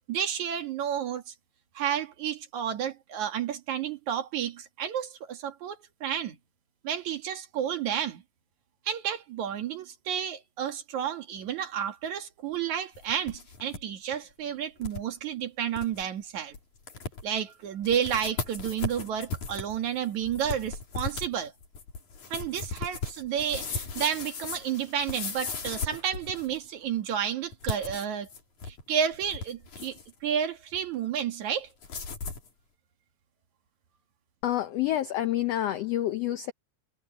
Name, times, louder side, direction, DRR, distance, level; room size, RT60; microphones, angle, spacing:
voice 1, 0.1-1.3 1.7-6.4 6.8-8.2 8.8-16.6 17.2-21.5 22.3-28.3 28.7-31.7, right 9 dB, 65° right, 3.0 m, -31 dB
sound 1, 13.0-13.8 14.1-14.2 14.8-15.0 15.4-15.5 15.7-16.0 16.5-16.6 16.9-17.4 17.8-26.7 27.5-28.8 29.1-30.1 31.8-32.5, left 4 dB, 60° left, 5.2 m, -37 dB
voice 2, 34.4-36.5, left 13 dB, 85° left, 1.4 m, -28 dB
omnidirectional pair, 3.8 m